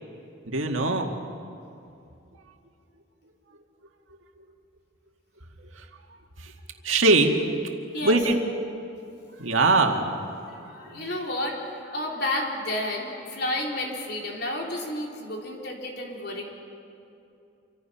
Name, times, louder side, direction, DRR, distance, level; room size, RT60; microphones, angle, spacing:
voice 1, 0.5-1.1 6.8-7.3 8.0-8.4 9.4-10.1 10.9-11.0, right 3 dB, 90° right, 3 dB, 2.1 m, -21 dB
voice 2, 10.6-16.4, left 1 dB, 55° left, -1 dB, 3.8 m, -31 dB
27.5 x 25.0 x 5.8 m, 2.7 s
head